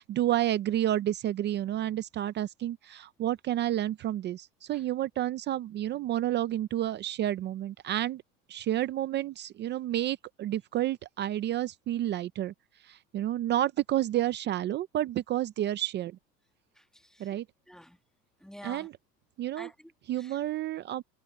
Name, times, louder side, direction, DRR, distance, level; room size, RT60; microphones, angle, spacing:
voice 1, 0.0-8.2 8.5-12.5 12.9-16.2 17.2-17.4 18.6-18.9 19.4-19.7 20.1-21.0, right 13 dB, 25° right, 0.4 m, -30 dB
voice 2, 16.7-17.4 17.7-18.0 18.4-18.9 19.6-20.4, equal, ahead, 1.6 m, -49 dB
supercardioid pair, 135°, 49 cm